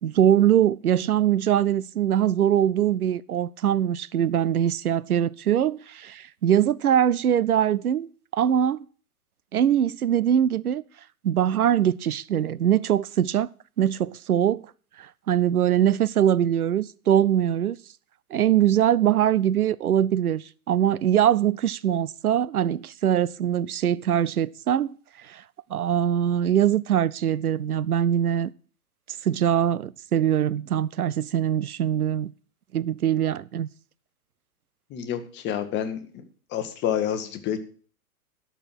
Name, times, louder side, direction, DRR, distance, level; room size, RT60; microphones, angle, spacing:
voice 1, 0.0-8.9 9.5-10.8 11.2-13.5 13.8-14.6 15.3-17.8 18.3-25.0 25.3-25.4 25.7-28.5 29.2-32.3 32.7-33.7, right 10 dB, 75° right, 0.6 m, -22 dB
voice 2, 34.9-36.2 36.5-37.6, left 9 dB, 25° left, 1.2 m, -28 dB
12.5 x 4.6 x 7.6 m
figure-of-eight pair, 105°, 44 cm